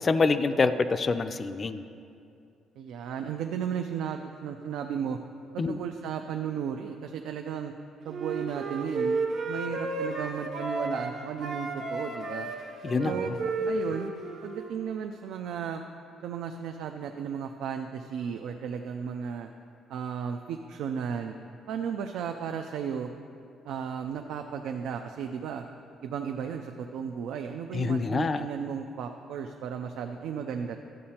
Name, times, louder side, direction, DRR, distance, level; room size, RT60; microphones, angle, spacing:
voice 1, 0.0-1.8 5.6-5.8 12.8-13.1 27.7-28.4, left 4 dB, 30° left, 11 dB, 0.3 m, -26 dB
voice 2, 2.8-5.2 5.7-7.7 8.0-12.5 13.0-13.3 13.7-14.1 14.4-15.8 16.2-19.5 19.9-21.3 21.7-23.1 23.6-25.6 26.0-30.8, right 7 dB, 85° right, 5 dB, 0.3 m, -34 dB
Wind instrument woodwind instrument, 8.1-11.1 11.4-14.7, right 3 dB, 65° right, 1.0 m, -32 dB
12.0 x 7.5 x 2.9 m, 2.5 s
cardioid pair, 125°, 0 cm